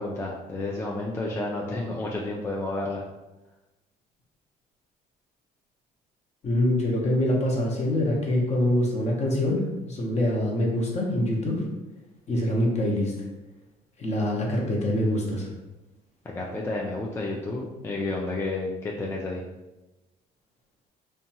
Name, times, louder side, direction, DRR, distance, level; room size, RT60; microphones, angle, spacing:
voice 1, 0.0-3.0 16.2-19.4, left 2 dB, 15° left, -3 dB, 0.3 m, -31 dB
voice 2, 6.4-11.6 12.3-13.1 14.0-15.5, left 1 dB, 40° left, -1 dB, 0.7 m, -25 dB
2.7 x 2.2 x 2.7 m, 1.0 s
cardioid pair, 110°, 17 cm